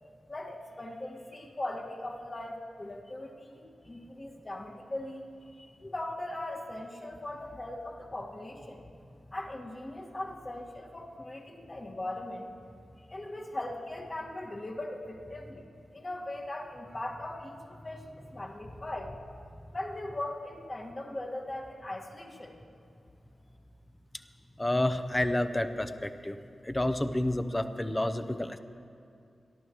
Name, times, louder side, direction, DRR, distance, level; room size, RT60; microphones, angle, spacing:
voice 1, 0.3-5.3 5.8-8.8 9.3-12.5 13.1-15.7 15.9-19.2 19.7-22.6, left 1 dB, 35° left, -1 dB, 1.8 m, -39 dB
voice 2, 24.6-26.4 26.6-28.6, left 1 dB, 15° left, 9 dB, 0.7 m, -29 dB
27.0 x 11.5 x 3.1 m, 2.6 s
cardioid pair, 70°, 0 cm